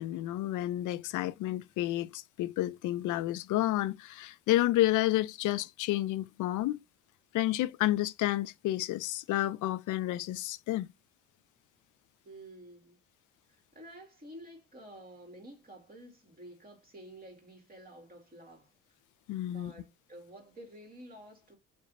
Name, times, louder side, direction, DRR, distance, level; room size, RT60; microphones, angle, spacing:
voice 1, 0.0-6.8 7.3-10.9 19.3-19.7, left 15 dB, 80° left, 0.5 m, -30 dB
voice 2, 12.2-13.0 13.7-18.7 19.4-21.6, right 1 dB, 30° right, 2.0 m, -50 dB
5.2 x 2.4 x 4.0 m
cardioid pair, 90°, 30 cm